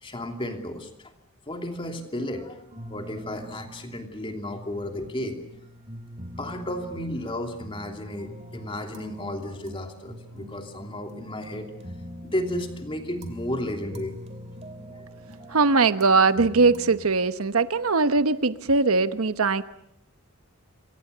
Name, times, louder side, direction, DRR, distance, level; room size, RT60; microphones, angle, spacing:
voice 1, 0.0-0.9 1.5-5.4 6.4-11.7 12.2-14.1 14.8-15.1 15.5-15.6, left 1 dB, 25° left, 4 dB, 2.9 m, -33 dB
sound 1, 2.7-17.0, equal, 30° right, 2.7 m, -43 dB
voice 2, 15.5-19.6, right 4 dB, 80° right, 11 dB, 1.0 m, -21 dB
27.0 x 24.0 x 6.8 m, 0.77 s
head